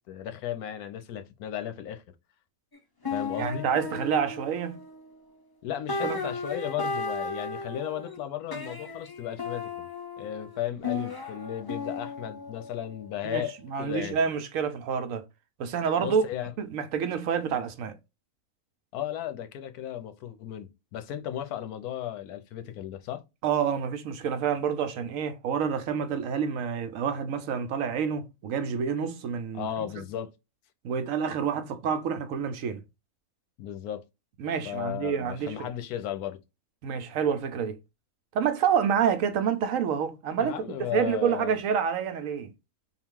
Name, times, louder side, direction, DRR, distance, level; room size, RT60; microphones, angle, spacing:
voice 1, 0.1-2.0 3.1-3.7 5.6-9.9 10.2-14.2 16.0-16.5 18.9-23.2 29.5-30.3 33.6-34.0 34.6-36.4 40.4-41.6, left 10 dB, 85° left, 1.2 m, -35 dB
sound 1, 2.7-2.8 3.0-5.4 5.9-8.2 8.5-13.7, left 3 dB, 35° left, 0.3 m, -35 dB
voice 2, 3.4-4.8 6.0-6.2 13.2-15.2 15.6-16.2 16.6-18.0 23.4-30.0 30.8-32.8 34.4-35.7 36.8-37.8 38.3-42.5, right 7 dB, 70° right, 0.9 m, -28 dB
3.8 x 2.3 x 3.6 m
omnidirectional pair, 1.6 m